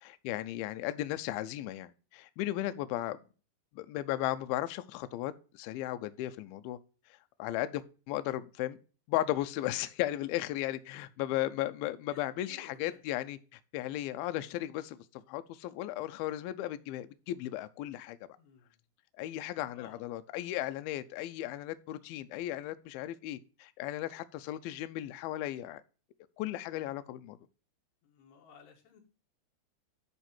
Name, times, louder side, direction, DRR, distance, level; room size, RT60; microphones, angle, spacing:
voice 1, 0.0-3.2 3.7-6.8 7.4-8.8 9.1-18.2 19.2-25.8 26.4-27.4, left 14 dB, 90° left, 2.1 m, -36 dB
voice 2, 12.1-13.0 18.4-18.8 19.7-20.1 28.0-29.0, left 6 dB, 70° left, 3.7 m, -57 dB
11.0 x 3.7 x 5.9 m
omnidirectional pair, 5.0 m